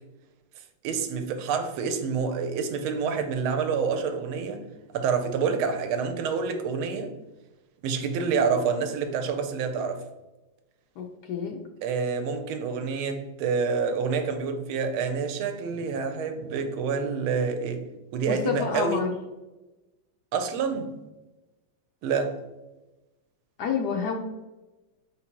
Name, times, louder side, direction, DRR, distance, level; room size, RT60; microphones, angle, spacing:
voice 1, 0.8-4.6 4.9-7.1 7.8-10.0 11.8-17.8 18.1-19.0 20.3-21.0 22.0-22.4, right 5 dB, 85° right, 1.5 m, -27 dB
voice 2, 11.0-11.6 18.3-19.2 23.6-24.2, left 6 dB, 85° left, 0.9 m, -29 dB
4.5 x 3.9 x 2.9 m
omnidirectional pair, 2.3 m